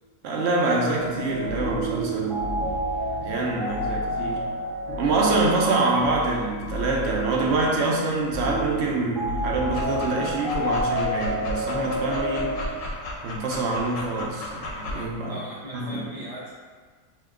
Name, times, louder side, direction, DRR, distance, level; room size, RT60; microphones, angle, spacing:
voice 1, 0.2-2.8 3.1-4.4 5.0-12.6 13.2-15.4 15.7-16.0, right 2 dB, 65° right, -2 dB, 0.7 m, -26 dB
sound 1, 1.0-12.7, right 1 dB, 35° right, 0.4 m, -30 dB
Dog, 9.6-15.0, left 1 dB, 70° left, 0.9 m, -35 dB
voice 2, 15.3-16.5, right 1 dB, 55° left, -11 dB, 0.4 m, -38 dB
2.8 x 2.3 x 3.5 m, 1.5 s
omnidirectional pair, 1.5 m